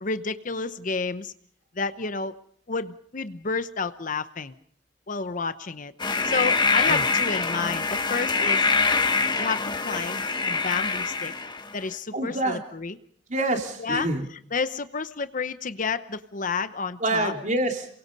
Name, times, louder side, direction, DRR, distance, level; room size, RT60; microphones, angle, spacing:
voice 1, 0.0-1.3 1.8-2.4 2.7-4.5 5.1-5.9 6.3-8.7 9.4-11.3 11.7-13.0 13.8-14.1 14.5-17.3, left 4 dB, 45° left, 12 dB, 0.9 m, -30 dB
sound 1, 6.0-11.8, left 4 dB, 25° left, 1.5 m, -24 dB
voice 2, 12.1-12.6 13.3-14.3 17.0-17.9, right 1 dB, 45° right, 3 dB, 3.5 m, -26 dB
28.0 x 23.5 x 5.4 m, 0.62 s
head